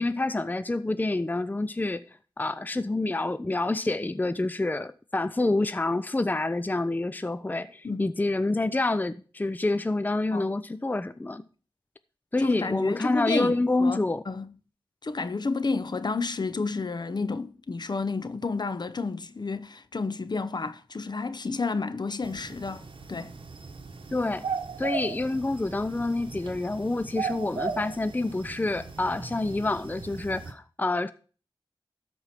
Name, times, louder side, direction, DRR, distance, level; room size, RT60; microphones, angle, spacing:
voice 1, 0.0-2.0 2.4-11.4 12.3-14.2 24.1-24.5 24.8-31.1, left 2 dB, 20° left, 0.5 m, -27 dB
voice 2, 12.4-14.5 15.0-23.3, left 4 dB, 50° left, 0.8 m, -31 dB
sound 1, 22.2-30.5, right 5 dB, 65° right, 1.2 m, -37 dB
13.0 x 4.8 x 5.8 m
cardioid pair, 55°, 9 cm